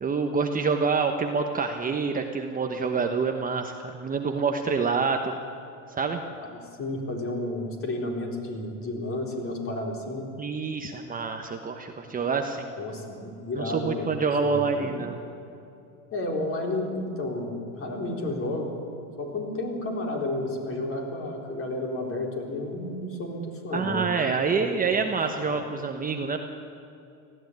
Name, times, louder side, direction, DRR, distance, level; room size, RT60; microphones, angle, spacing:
voice 1, 0.0-5.3 6.0-6.2 10.4-12.7 13.6-15.2 23.7-26.4, right 5 dB, 20° right, 4 dB, 1.2 m, -27 dB
voice 2, 6.5-10.3 12.8-15.0 16.1-18.7 19.2-25.0 25.4-25.6, left 2 dB, 30° left, 1 dB, 4.3 m, -32 dB
18.5 x 14.5 x 9.5 m, 2.7 s
supercardioid pair, 120°, 41 cm